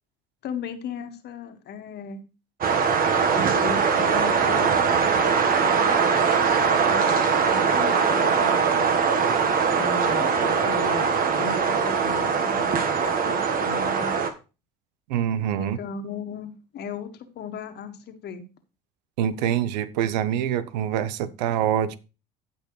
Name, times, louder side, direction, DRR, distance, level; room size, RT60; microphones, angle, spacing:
voice 1, 0.4-2.2 3.3-6.0 6.4-8.9 9.8-11.1 11.3-14.3 15.6-18.4, left 5 dB, 50° left, 1.7 m, -36 dB
sound 1, 2.6-14.3, right 6 dB, 45° right, 1.4 m, -21 dB
voice 2, 15.1-15.8 19.2-21.9, right 10 dB, 80° right, 0.8 m, -25 dB
16.0 x 5.3 x 3.2 m
hypercardioid pair, 80°, 21 cm